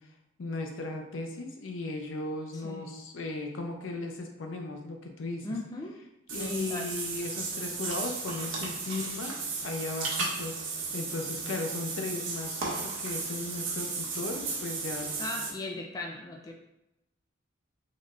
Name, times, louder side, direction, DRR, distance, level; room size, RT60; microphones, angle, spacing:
voice 1, 0.4-5.5 6.3-10.6 10.9-15.1, left 2 dB, 75° left, 3 dB, 0.5 m, -36 dB
voice 2, 2.5-2.9 5.4-5.9 6.3-6.9 15.2-16.5, left 2 dB, 20° left, 0 dB, 0.3 m, -38 dB
Water / Bathtub (filling or washing), 6.3-15.5, right 4 dB, 85° right, 0.8 m, -35 dB
3.7 x 2.4 x 3.1 m, 0.93 s
head